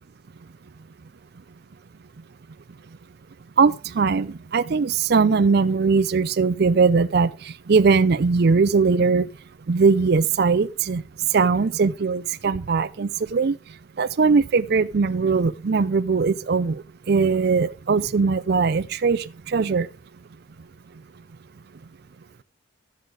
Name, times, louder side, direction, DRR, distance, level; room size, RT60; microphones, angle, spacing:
voice 1, 3.6-7.3 7.7-9.3 9.7-11.0 11.3-13.6 14.0-16.8 17.1-19.9, right 4 dB, 55° right, 0.5 m, -20 dB
13.0 x 8.0 x 3.8 m
head